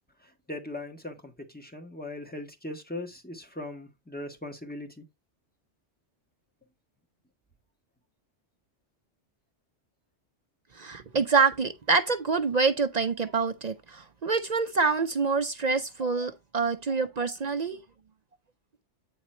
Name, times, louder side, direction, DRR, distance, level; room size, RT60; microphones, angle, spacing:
voice 1, 0.5-5.0 16.0-16.3 16.9-17.0, left 1 dB, 10° left, 1.3 m, -39 dB
voice 2, 10.8-17.8, right 4 dB, 50° right, 0.6 m, -26 dB
8.9 x 4.1 x 4.2 m
omnidirectional pair, 1.2 m